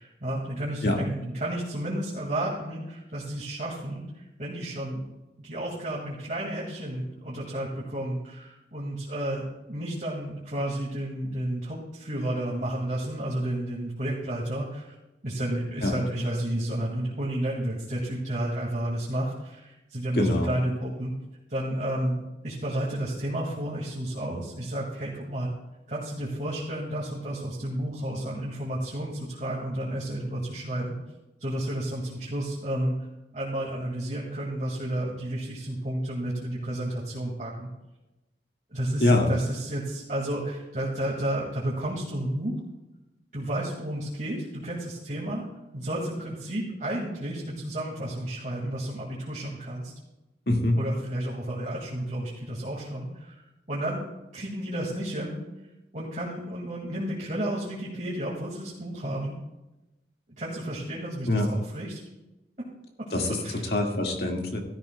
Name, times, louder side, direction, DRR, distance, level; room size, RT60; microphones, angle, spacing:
voice 1, 0.0-5.0 5.4-14.9 15.2-21.1 21.5-25.5 25.9-31.0 31.4-33.0 33.3-37.7 38.7-42.5 43.3-45.5 45.7-49.9 50.8-53.4 53.7-54.0 54.3-55.4 55.9-59.3 60.3-62.0 63.0-63.6, right 1 dB, 45° right, -5 dB, 2.0 m, -31 dB
voice 2, 20.1-20.5 39.0-39.3 50.5-50.8 61.3-61.5 63.1-63.4 63.7-64.6, left 1 dB, 65° left, 1 dB, 1.9 m, -23 dB
15.5 x 13.5 x 2.3 m, 0.98 s
head